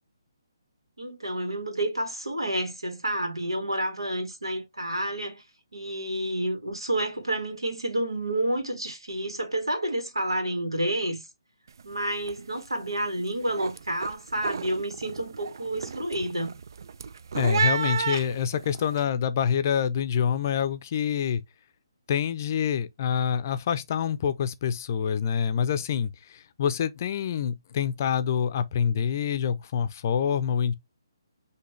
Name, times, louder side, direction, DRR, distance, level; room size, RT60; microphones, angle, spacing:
voice 1, 1.0-5.4 5.7-11.2 11.8-16.5, right 1 dB, 85° right, 1.9 m, -29 dB
sound 1, 11.7-11.9 12.2-12.7 13.0-19.0, right 6 dB, 55° right, 0.4 m, -32 dB
voice 2, 17.3-21.4 22.1-30.7, left 8 dB, 40° left, 0.5 m, -26 dB
6.0 x 2.8 x 3.1 m
figure-of-eight pair, 140°, 2 cm